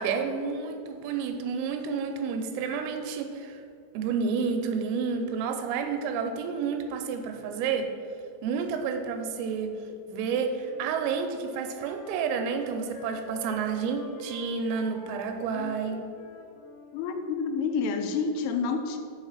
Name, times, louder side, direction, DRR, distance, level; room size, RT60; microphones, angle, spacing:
voice 1, 0.0-3.6 3.9-7.9 8.4-9.8 10.1-16.0, right 5 dB, 85° right, 5 dB, 3.1 m, -30 dB
Wind instrument woodwind instrument, 10.6-16.9, left 1 dB, 50° left, 2.0 m, -48 dB
voice 2, 16.9-19.0, left 5 dB, 85° left, 6 dB, 3.0 m, -29 dB
7.2 x 5.3 x 7.1 m, 2.4 s
omnidirectional pair, 6.0 m